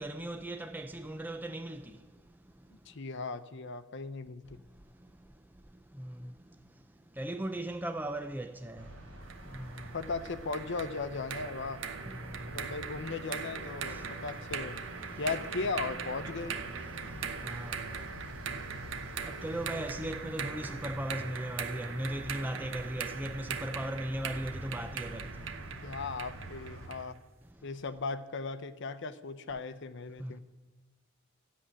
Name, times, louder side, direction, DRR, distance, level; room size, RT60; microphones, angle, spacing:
voice 1, 0.0-1.8 6.0-6.2 7.2-8.8 9.5-9.7 12.1-12.2 17.4-17.8 19.2-25.3 30.2-30.3, right 1 dB, 10° right, 0.5 m, -37 dB
voice 2, 2.9-4.6 9.9-11.8 12.5-14.8 15.2-16.6 25.8-27.2 27.6-30.4, left 4 dB, 60° left, 0.8 m, -37 dB
sound 1, 8.8-26.9, right 1 dB, 85° right, 3.9 m, -46 dB
sound 2, 9.3-27.1, right 6 dB, 65° right, 1.0 m, -41 dB
13.0 x 7.6 x 9.9 m
head